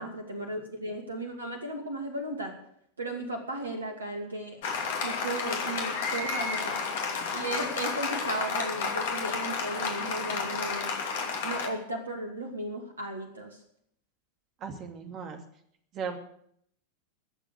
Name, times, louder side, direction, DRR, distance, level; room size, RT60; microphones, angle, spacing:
voice 1, 0.0-2.5 3.0-6.8 7.3-10.9 11.4-13.6, right 1 dB, 75° right, 4 dB, 2.6 m, -36 dB
Applause, 4.6-11.7, left 5 dB, 55° left, 2.6 m, -31 dB
voice 2, 14.6-15.4 15.9-16.2, right 6 dB, 30° right, 5 dB, 2.6 m, -36 dB
21.5 x 7.6 x 6.7 m, 0.68 s
figure-of-eight pair, 90°, 0 cm